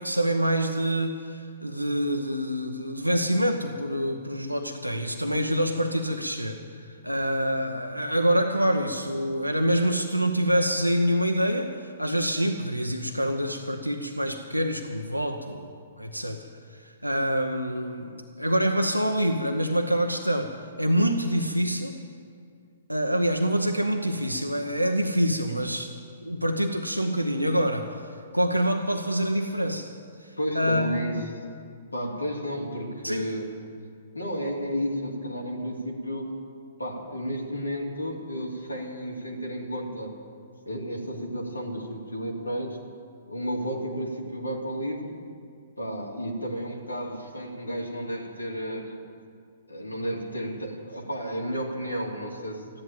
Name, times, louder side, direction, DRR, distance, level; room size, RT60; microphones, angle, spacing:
voice 1, 0.0-15.7 16.0-16.5 16.8-22.0 22.9-25.9 26.2-27.9 28.3-29.9 30.2-31.1 33.0-33.3, equal, 90° right, 4 dB, 0.9 m, -26 dB
voice 2, 30.4-31.2 31.9-33.5 34.1-36.3 36.8-40.1 40.6-42.8 43.3-45.1 45.8-48.9 49.7-52.6, equal, 80° left, -1 dB, 2.8 m, -32 dB
14.5 x 11.0 x 9.0 m, 2.2 s
figure-of-eight pair, 120°, 0 cm